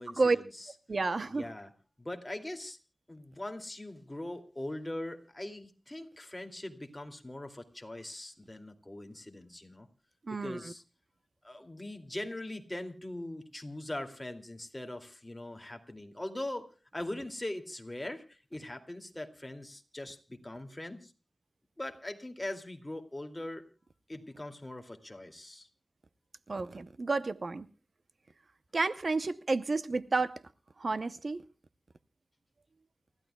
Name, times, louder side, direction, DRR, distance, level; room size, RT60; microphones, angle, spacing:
voice 1, 0.0-0.7 1.3-1.7 2.0-2.8 3.1-9.9 10.3-10.8 11.4-21.1 21.8-23.6 24.1-25.7, left 1 dB, 20° left, 2.4 m, -41 dB
voice 2, 0.9-1.5 10.3-10.6 26.5-27.7 28.7-30.4 30.8-31.4, right 3 dB, 55° right, 0.7 m, -30 dB
29.0 x 15.0 x 2.2 m
wide cardioid pair, 85°, 0 cm